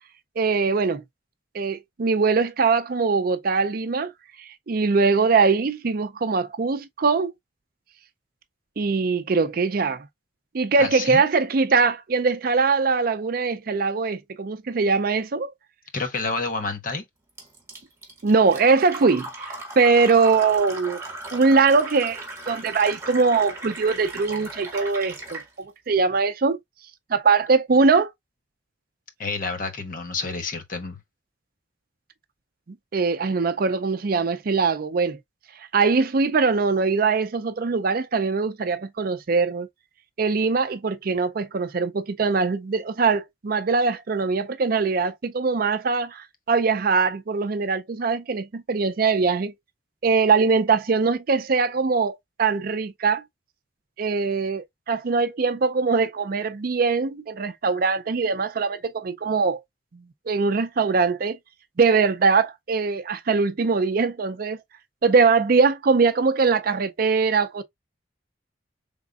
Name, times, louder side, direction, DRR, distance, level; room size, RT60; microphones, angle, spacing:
voice 1, 0.4-1.0 1.5-4.1 4.4-7.3 8.8-10.0 10.5-15.5 18.2-21.0 21.3-22.2 22.5-26.6 27.1-28.1 32.9-35.2 35.7-39.7 40.2-49.5 50.0-53.2 54.0-59.6 60.3-61.4 61.8-64.6 65.0-67.6, right 4 dB, 50° right, 0.5 m, -22 dB
voice 2, 10.8-11.2 15.9-17.0 29.2-31.0, left 3 dB, 45° left, 1.0 m, -29 dB
Fill (with liquid), 17.4-25.5, right 2 dB, 15° right, 1.6 m, -37 dB
5.0 x 3.6 x 2.4 m
head